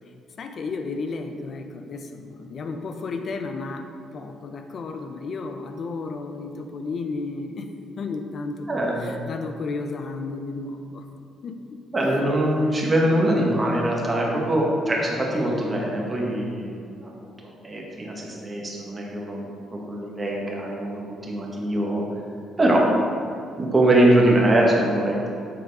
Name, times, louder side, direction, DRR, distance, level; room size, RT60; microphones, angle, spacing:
voice 1, 0.4-7.7 8.0-11.1 11.4-11.8 12.1-12.3, left 3 dB, 45° left, 6 dB, 0.6 m, -33 dB
voice 2, 8.7-9.0 11.9-17.1 17.6-19.4 19.7-22.0 22.6-22.9 23.6-25.3, right 1 dB, 20° right, -2 dB, 1.2 m, -22 dB
7.6 x 3.9 x 4.7 m, 2.4 s
cardioid pair, 130°, 0 cm